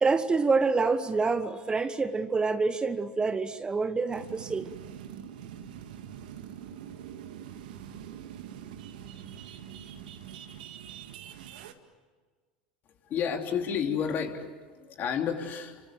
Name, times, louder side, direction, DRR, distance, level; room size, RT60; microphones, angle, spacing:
voice 1, 0.0-4.7, right 4 dB, 20° right, 11 dB, 1.2 m, -27 dB
sound 1, 4.1-11.7, right 9 dB, 75° right, 2.1 m, -44 dB
voice 2, 13.1-14.5 14.8-15.8, left 7 dB, 45° left, 4 dB, 3.5 m, -30 dB
29.5 x 25.5 x 7.9 m, 1.5 s
hypercardioid pair, 85°, 5 cm